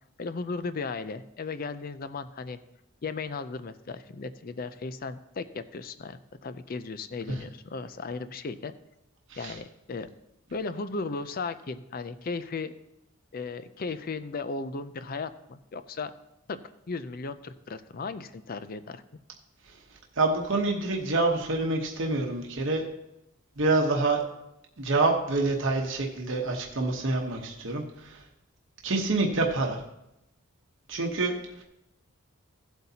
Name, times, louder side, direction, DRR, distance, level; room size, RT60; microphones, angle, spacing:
voice 1, 0.2-2.6 3.0-8.7 9.4-10.1 10.5-12.7 13.3-16.1 16.5-16.6 16.9-19.0, left 4 dB, 40° left, 12 dB, 0.4 m, -36 dB
voice 2, 20.2-22.8 23.6-24.2 24.8-28.2 28.8-29.8 30.9-31.6, right 2 dB, 60° right, 0 dB, 1.0 m, -27 dB
15.5 x 8.0 x 2.8 m, 0.87 s
head